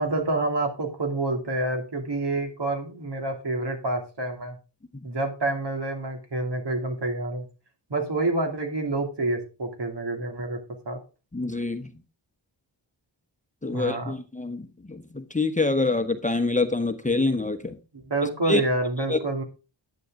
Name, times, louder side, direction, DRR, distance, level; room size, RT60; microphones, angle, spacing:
voice 1, 0.0-4.6 5.0-7.5 7.9-10.6 10.8-11.0 13.7-14.1 17.9-19.4, right 2 dB, 65° right, 3 dB, 2.9 m, -28 dB
voice 2, 11.3-11.9 13.6-17.8 18.5-18.6 19.1-19.2, left 3 dB, 15° left, 7 dB, 1.0 m, -26 dB
11.5 x 9.3 x 3.8 m, 0.32 s
wide cardioid pair, 95°, 45 cm